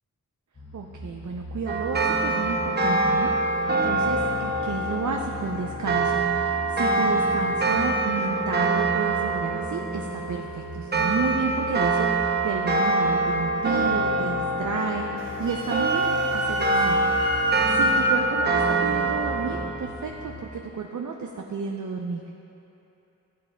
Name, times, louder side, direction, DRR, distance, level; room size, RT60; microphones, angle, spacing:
sound 1, 0.5-20.4, left 1 dB, 45° left, 2.2 m, -41 dB
voice 1, 0.7-22.3, right 5 dB, 65° right, 1 dB, 0.6 m, -32 dB
sound 2, 1.7-19.7, right 2 dB, 30° right, 0.8 m, -25 dB
Wind instrument woodwind instrument, 15.2-18.1, right 1 dB, 80° right, 1.8 m, -27 dB
15.0 x 8.6 x 2.3 m, 3.0 s
wide cardioid pair, 70°, 32 cm